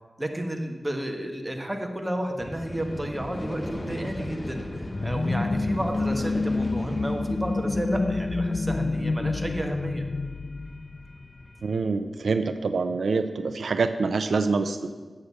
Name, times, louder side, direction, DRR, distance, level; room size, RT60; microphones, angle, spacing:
voice 1, 0.2-10.1, right 1 dB, 15° right, 3 dB, 1.3 m, -32 dB
sound 1, 2.4-11.7, left 1 dB, 30° left, 0.7 m, -38 dB
sound 2, 4.9-11.4, left 3 dB, 50° left, 0.4 m, -28 dB
voice 2, 11.6-14.9, right 4 dB, 85° right, 9 dB, 0.5 m, -26 dB
8.3 x 6.5 x 7.4 m, 1.4 s
wide cardioid pair, 70°, 0 cm